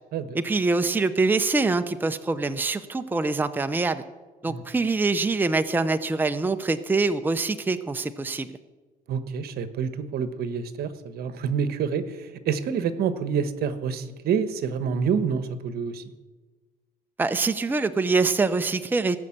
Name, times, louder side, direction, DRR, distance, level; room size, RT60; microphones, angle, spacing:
voice 1, 0.3-4.0 4.4-8.5 17.2-19.2, right 3 dB, 10° right, 9 dB, 0.7 m, -24 dB
voice 2, 9.1-16.0, right 6 dB, 65° right, 11 dB, 1.2 m, -27 dB
17.5 x 6.5 x 8.7 m, 1.3 s
cardioid pair, 110°, 17 cm